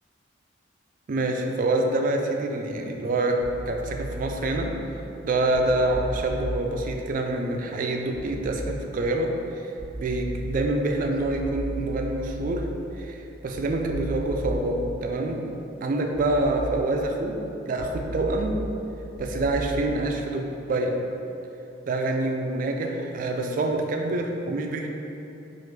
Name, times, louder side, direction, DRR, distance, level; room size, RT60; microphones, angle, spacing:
voice 1, 1.1-4.8 5.2-9.7 10.0-12.7 12.9-15.5 15.8-18.6 19.2-21.0 21.9-24.9, right 2 dB, 45° right, 3 dB, 0.3 m, -26 dB
sound 1, 3.4-4.4 5.5-6.4 8.1-8.4 9.8-10.4 11.1-12.4 13.5-14.4 16.1-16.4 17.8-18.4 19.1-19.5, right 1 dB, 50° left, 1.1 m, -36 dB
4.6 x 2.5 x 3.1 m, 2.9 s
head